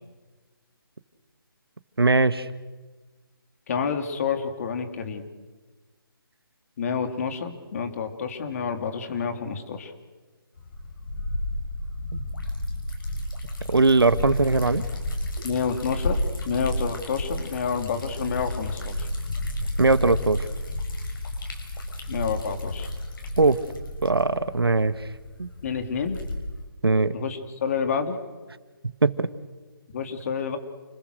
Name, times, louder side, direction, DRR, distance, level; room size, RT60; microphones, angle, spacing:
voice 1, 2.0-2.5 12.1-12.2 13.7-14.8 19.8-20.4 23.4-23.6 24.0-24.9 25.4-25.5 26.8-27.1 29.0-29.3, right 3 dB, 90° right, 13 dB, 1.5 m, -20 dB
voice 2, 3.7-5.2 6.8-9.9 15.4-19.1 22.1-22.9 25.6-26.2 27.1-28.2 29.9-30.6, left 6 dB, 40° left, 6 dB, 3.2 m, -29 dB
Liquid, 10.6-26.7, left 1 dB, 60° left, 7.2 m, -32 dB
30.0 x 21.0 x 6.7 m, 1.3 s
figure-of-eight pair, 155°, 12 cm